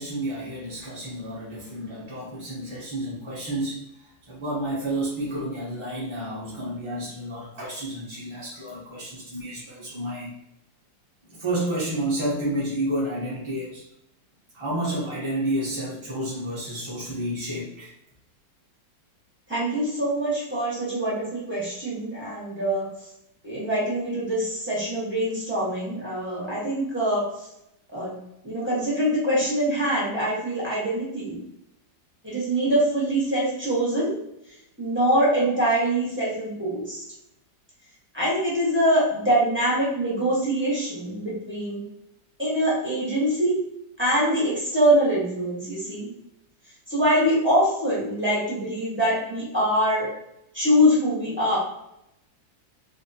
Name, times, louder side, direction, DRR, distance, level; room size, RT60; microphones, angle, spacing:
voice 1, 0.0-3.9 4.3-10.3 11.3-13.8 14.5-17.9, right 1 dB, 30° right, -7 dB, 0.5 m, -30 dB
voice 2, 19.5-22.9 23.4-27.2 27.9-28.1 28.4-31.4 32.2-34.1 34.8-37.0 38.1-41.8 42.4-43.6 44.0-46.1 46.9-50.1 50.5-51.6, equal, 5° right, -7 dB, 1.2 m, -24 dB
4.3 x 2.7 x 2.7 m, 0.79 s
omnidirectional pair, 2.0 m